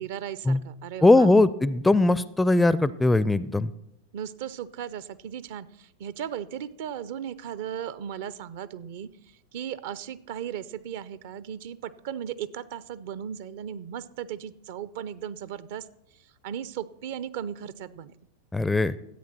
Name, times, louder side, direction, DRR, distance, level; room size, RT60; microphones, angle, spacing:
voice 1, 0.0-1.3 4.1-9.1 9.5-15.9 16.4-18.1, right 9 dB, 50° right, 17 dB, 0.5 m, -36 dB
voice 2, 1.0-3.7 18.5-18.9, left 2 dB, 5° left, 18 dB, 0.4 m, -20 dB
13.0 x 8.5 x 6.0 m, 0.81 s
figure-of-eight pair, 90°, 0 cm